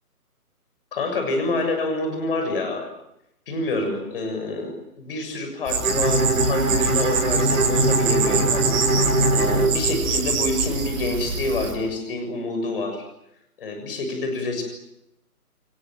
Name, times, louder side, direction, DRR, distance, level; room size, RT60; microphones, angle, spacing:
voice 1, 0.9-2.9 3.5-13.0 13.6-14.6, left 2 dB, 35° left, 6 dB, 7.1 m, -27 dB
sound 1, 5.7-11.7, right 5 dB, 20° right, 6.2 m, -25 dB
Bowed string instrument, 5.8-10.6, right 2 dB, 60° right, 4.9 m, -22 dB
29.5 x 23.5 x 7.6 m, 0.82 s
figure-of-eight pair, 145°, 46 cm